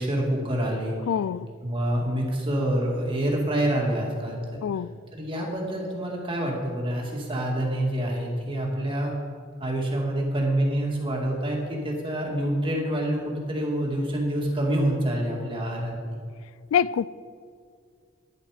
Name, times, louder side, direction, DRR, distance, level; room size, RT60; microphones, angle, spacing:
voice 1, 0.0-1.0 1.6-4.6 5.1-9.1 9.6-16.2, right 1 dB, 25° right, 2.2 m, -27 dB
voice 2, 1.1-1.5 4.6-5.0 16.7-17.1, left 8 dB, 90° left, 0.3 m, -25 dB
10.5 x 10.5 x 5.0 m
head